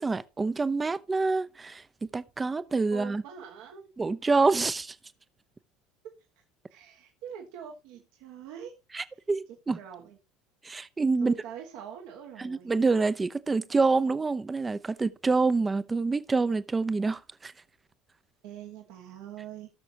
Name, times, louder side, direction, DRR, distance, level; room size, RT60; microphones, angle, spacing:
voice 1, 0.0-1.8 2.1-3.2 4.0-4.9 8.9-9.8 10.6-11.3 12.4-17.5, right 3 dB, 20° right, 0.9 m, -27 dB
voice 2, 2.9-3.9 6.0-6.1 6.7-8.8 9.7-10.2 11.2-12.7 18.4-19.7, right 8 dB, 70° right, 1.8 m, -43 dB
18.5 x 6.2 x 2.9 m
hypercardioid pair, 75°, 0 cm